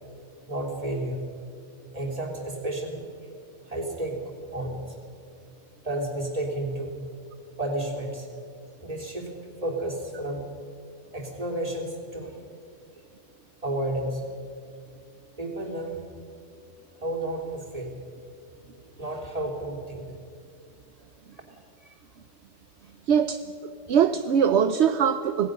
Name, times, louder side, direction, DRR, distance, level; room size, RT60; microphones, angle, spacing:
voice 1, 0.5-1.3 1.9-3.1 3.7-4.2 4.5-4.9 5.8-7.0 7.6-8.3 8.8-9.3 9.6-10.4 11.1-12.3 13.6-14.2 15.4-16.0 17.0-18.0 19.0-20.1, right 1 dB, 30° right, 0 dB, 3.4 m, -31 dB
voice 2, 23.1-23.4 23.9-25.5, right 7 dB, 65° right, 10 dB, 1.0 m, -21 dB
26.5 x 18.5 x 6.7 m, 2.4 s
omnidirectional pair, 1.3 m